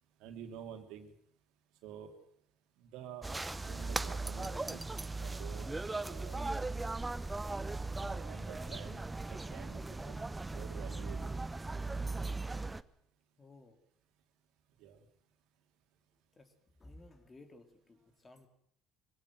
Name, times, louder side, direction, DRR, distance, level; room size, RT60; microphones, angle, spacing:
voice 1, 0.2-1.1 1.8-2.2 2.8-3.3 3.7-4.8 5.2-6.4 8.1-9.0 9.3-11.3 14.8-15.0, right 8 dB, 70° right, 6 dB, 2.8 m, -49 dB
sound 1, 3.2-12.8, right 3 dB, 15° right, 0.9 m, -38 dB
voice 2, 13.4-13.8 16.3-16.5 16.8-18.5, left 2 dB, 25° left, 8 dB, 3.2 m, -56 dB
21.5 x 17.0 x 7.7 m, 0.68 s
hypercardioid pair, 75°, 0 cm